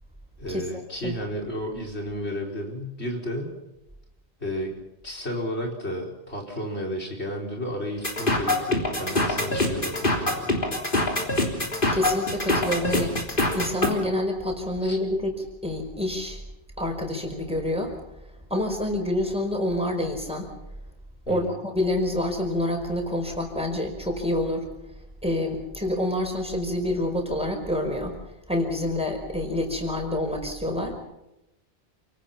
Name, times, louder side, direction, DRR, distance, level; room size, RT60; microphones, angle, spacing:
voice 1, 0.4-3.5 4.4-4.7 5.0-10.5 14.8-15.0 21.3-21.6, equal, 80° left, 0 dB, 5.1 m, -32 dB
sound 1, 8.0-13.9, left 1 dB, 50° left, 3.8 m, -24 dB
voice 2, 11.9-13.2 13.5-16.4 16.8-18.0 18.5-20.5 21.3-24.7 25.2-28.2 28.5-31.0, left 1 dB, 5° right, 2 dB, 5.2 m, -27 dB
28.5 x 18.5 x 5.9 m, 0.91 s
omnidirectional pair, 1.1 m